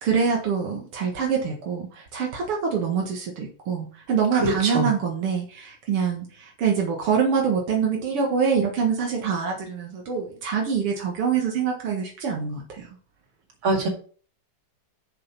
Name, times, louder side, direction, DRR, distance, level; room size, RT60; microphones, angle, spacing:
voice 1, 0.0-12.9, right 6 dB, 85° right, 0 dB, 2.6 m, -25 dB
voice 2, 4.3-4.9 13.6-13.9, right 2 dB, 70° right, 1 dB, 3.0 m, -23 dB
7.2 x 6.8 x 5.8 m, 0.43 s
omnidirectional pair, 2.4 m